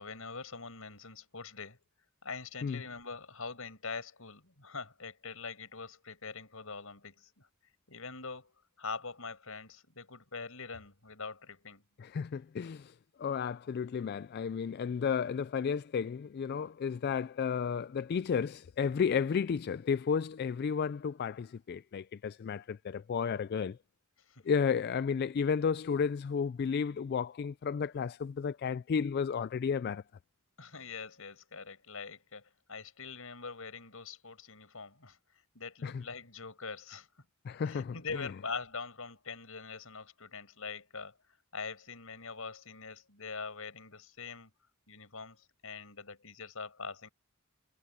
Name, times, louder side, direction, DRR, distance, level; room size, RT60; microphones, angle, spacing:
voice 1, 0.0-1.8 2.2-7.5 7.9-11.8 24.2-24.5 30.6-35.2 35.5-37.1 37.5-44.5 44.9-47.1, left 4 dB, 80° left, 5.6 m, -43 dB
voice 2, 12.0-12.9 13.2-23.8 24.4-30.0 35.8-35.9 37.4-38.0, left 6 dB, 50° left, 0.3 m, -32 dB
head